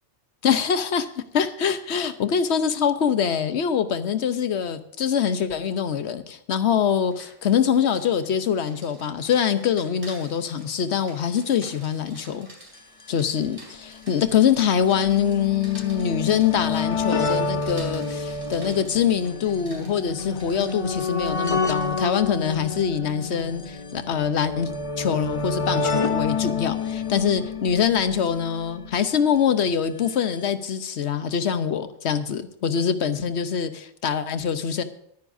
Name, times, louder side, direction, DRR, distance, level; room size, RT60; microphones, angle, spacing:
voice 1, 0.4-1.1 1.3-12.5 13.1-24.7 25.0-34.8, left 8 dB, 70° left, 1.1 m, -24 dB
Rain, 6.9-22.0, right 1 dB, 30° right, 4.4 m, -49 dB
sound 1, 12.7-12.8 13.0-13.1 14.0-29.2 30.2-30.3 30.4-30.5, left 4 dB, 35° left, 0.7 m, -29 dB
23.0 x 9.7 x 2.7 m
omnidirectional pair, 1.2 m